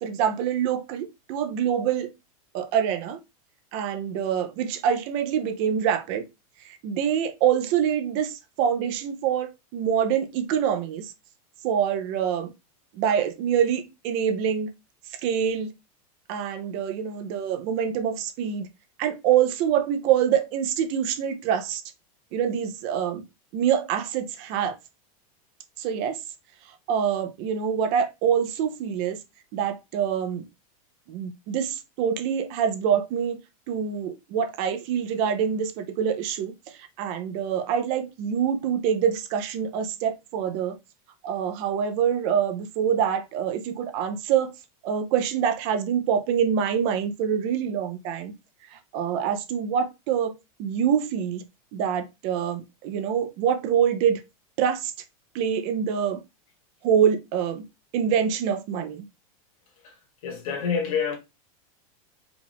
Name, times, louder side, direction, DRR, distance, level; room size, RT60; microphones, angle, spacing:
voice 1, 0.0-2.1 2.5-3.2 3.7-6.2 6.6-11.1 11.6-12.5 12.9-14.7 15.1-15.7 16.3-18.7 19.0-21.8 22.3-23.2 23.5-24.8 25.8-26.2 26.9-29.2 29.5-30.5 31.1-33.4 33.7-40.8 41.2-44.5 44.8-48.3 48.7-51.4 51.7-54.2 54.6-54.9 55.3-56.2 56.8-57.6 57.9-59.0, right 8 dB, 30° right, 0.5 m, -25 dB
voice 2, 60.2-61.2, left 6 dB, 65° left, 1.8 m, -27 dB
4.8 x 2.4 x 3.4 m
supercardioid pair, 175°, 19 cm